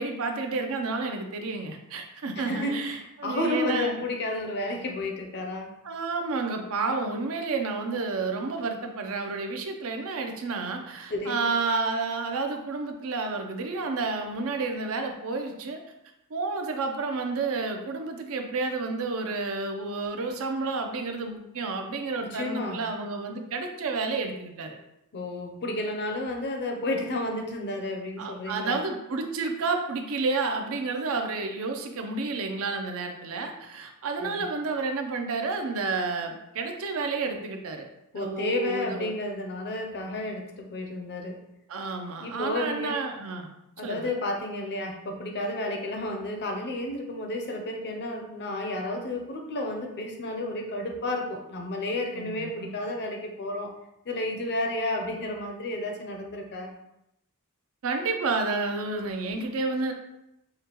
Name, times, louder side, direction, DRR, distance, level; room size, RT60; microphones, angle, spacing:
voice 1, 0.0-4.0 5.8-15.8 16.3-24.8 28.2-37.9 38.1-39.1 41.7-43.5 43.8-44.1 52.2-52.7 57.8-59.9, right 3 dB, 65° right, 4 dB, 0.5 m, -30 dB
voice 2, 2.4-5.7 11.1-11.5 22.2-22.9 25.1-28.8 34.2-34.4 38.1-41.4 42.2-43.0 43.8-53.7 54.1-56.7, left 1 dB, 50° left, 2 dB, 0.6 m, -31 dB
4.9 x 2.2 x 2.9 m, 0.85 s
head